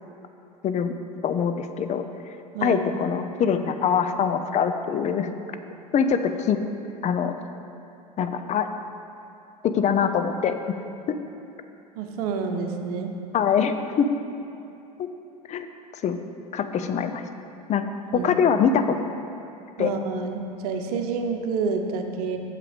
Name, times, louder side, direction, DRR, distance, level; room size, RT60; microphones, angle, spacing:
voice 1, 0.6-1.0 1.2-2.0 2.6-5.3 5.9-6.6 7.0-7.3 8.2-8.7 9.6-10.7 11.1-11.2 13.3-14.1 15.0-15.1 15.5-15.7 16.0-16.2 16.5-17.2 17.7-17.8 18.1-19.2 19.8-19.9, left 7 dB, 35° left, 9 dB, 0.6 m, -23 dB
voice 2, 12.0-13.1 18.1-18.3 19.8-22.4, right 5 dB, 70° right, 5 dB, 0.9 m, -28 dB
8.4 x 6.8 x 5.1 m, 2.8 s
hypercardioid pair, 75°, 20 cm